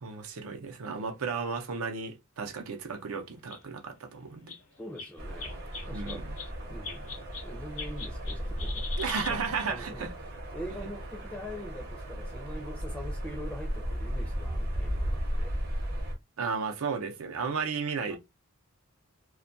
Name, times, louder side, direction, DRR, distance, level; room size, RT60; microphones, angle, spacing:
voice 1, 0.0-4.6 5.9-6.4 9.0-10.1 16.4-18.2, right 5 dB, 90° right, 0.6 m, -34 dB
sound 1, 2.5-2.6 3.2-3.3 3.5-3.6 3.9-4.0 4.5-4.6 5.0-7.5 7.8-9.7, left 5 dB, 70° left, 0.8 m, -41 dB
voice 2, 4.8-5.5 5.9-7.1 7.4-8.8 9.3-9.4 9.7-15.6 18.1-18.2, equal, 5° left, 0.4 m, -43 dB
sound 2, 5.2-16.1, equal, 50° right, 0.7 m, -35 dB
2.2 x 2.1 x 2.5 m
head